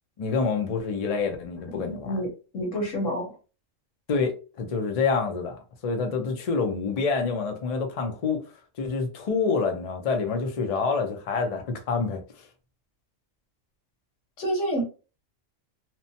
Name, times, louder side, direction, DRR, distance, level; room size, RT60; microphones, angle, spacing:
voice 1, 0.2-2.2 4.1-4.3 4.6-8.4 8.8-12.4, left 4 dB, 50° left, 0.4 m, -27 dB
voice 2, 1.7-2.3 2.5-3.4 14.4-14.8, equal, 80° left, 1.4 m, -28 dB
3.0 x 2.1 x 2.7 m
omnidirectional pair, 1.3 m